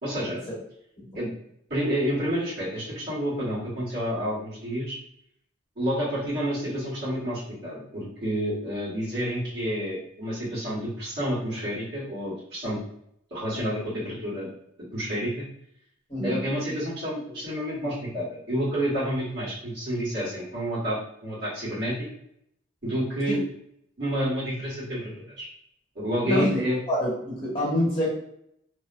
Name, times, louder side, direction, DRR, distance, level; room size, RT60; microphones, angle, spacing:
voice 1, 0.0-0.4 1.1-1.3 1.7-5.0 5.8-12.8 13.3-14.5 14.9-15.5 16.2-21.9 22.8-23.4 24.0-25.5 25.9-26.8, equal, 55° right, -9 dB, 1.3 m, -29 dB
voice 2, 16.1-16.4 23.3-23.4 26.2-26.6 26.9-28.1, left 1 dB, 25° left, -7 dB, 1.1 m, -26 dB
2.5 x 2.1 x 2.5 m, 0.74 s
head